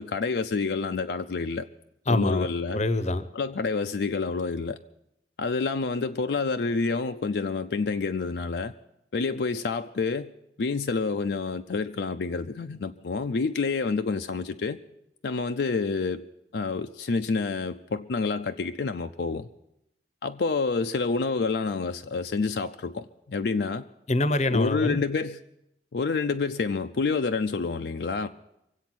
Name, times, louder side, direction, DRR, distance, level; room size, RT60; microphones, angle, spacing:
voice 1, 0.0-1.7 2.1-2.8 3.3-4.8 5.4-8.7 9.1-10.3 10.6-14.8 15.2-16.2 16.5-19.5 20.2-23.8 24.5-25.4 25.9-28.3, left 4 dB, 70° left, 0.5 m, -28 dB
voice 2, 2.1-2.5 2.7-3.2 24.1-25.0, left 2 dB, 40° left, 0.7 m, -25 dB
24.0 x 8.2 x 6.0 m
head